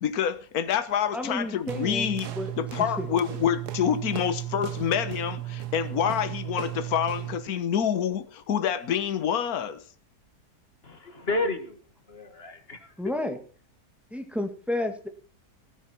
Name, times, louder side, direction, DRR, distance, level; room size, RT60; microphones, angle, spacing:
voice 1, 0.0-2.3 2.6-9.8, left 9 dB, 60° left, 1.6 m, -27 dB
voice 2, 1.1-2.5 3.0-3.1 13.0-13.4 14.1-15.1, left 1 dB, ahead, 1.8 m, -31 dB
sound 1, 1.7-7.5, right 14 dB, 70° right, 1.4 m, -35 dB
voice 3, 10.8-11.8 12.1-13.1, left 2 dB, 35° left, 2.1 m, -32 dB
17.5 x 9.6 x 4.5 m
omnidirectional pair, 1.8 m